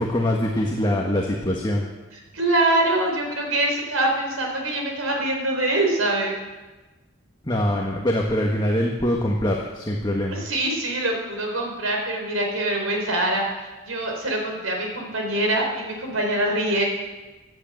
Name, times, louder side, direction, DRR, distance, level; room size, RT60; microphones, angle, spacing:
voice 1, 0.0-1.9 7.4-10.4, left 1 dB, 20° left, -1 dB, 1.5 m, -23 dB
voice 2, 2.3-6.3 10.3-13.4 13.9-16.9, right 1 dB, 90° right, 1 dB, 4.3 m, -24 dB
16.5 x 10.5 x 7.9 m, 1.2 s
head